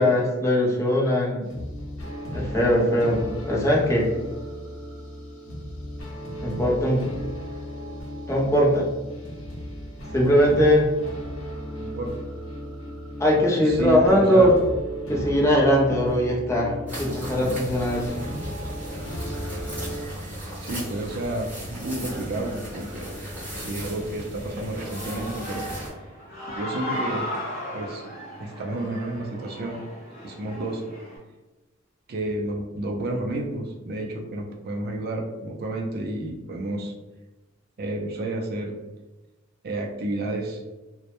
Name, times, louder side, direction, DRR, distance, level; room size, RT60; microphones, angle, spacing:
voice 1, 0.0-1.5 2.3-4.1 6.4-7.0 8.3-8.9 10.1-10.9 13.2-14.5 15.1-18.1, equal, 15° left, -3 dB, 0.5 m, -20 dB
sound 1, 1.4-20.1, equal, 80° left, 0.6 m, -35 dB
voice 2, 11.8-12.1 13.7-14.5 20.6-23.1 23.5-25.6 26.6-27.3 27.7-28.0 28.4-29.8 30.2-30.8 32.1-36.9 37.8-38.7 39.6-40.6, right 2 dB, 50° right, 1 dB, 0.4 m, -30 dB
sound 2, 16.9-25.9, equal, 10° right, 1.0 m, -36 dB
Human voice / Cheering, 24.6-31.2, equal, 45° left, 0.8 m, -36 dB
2.1 x 2.0 x 2.8 m, 1.1 s
head